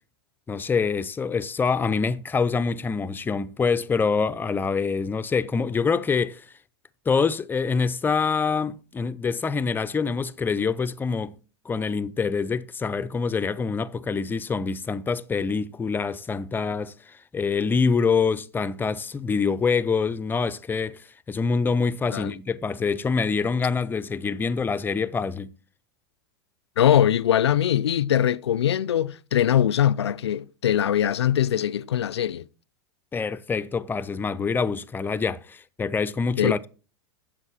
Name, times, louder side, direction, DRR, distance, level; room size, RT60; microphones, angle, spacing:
voice 1, 0.5-6.5 7.1-11.4 11.7-25.5 33.1-36.7, left 5 dB, 15° left, 0.5 m, -25 dB
voice 2, 26.8-32.4 36.3-36.5, left 10 dB, 90° left, 0.4 m, -22 dB
9.8 x 7.5 x 4.2 m
hypercardioid pair, 105°, 13 cm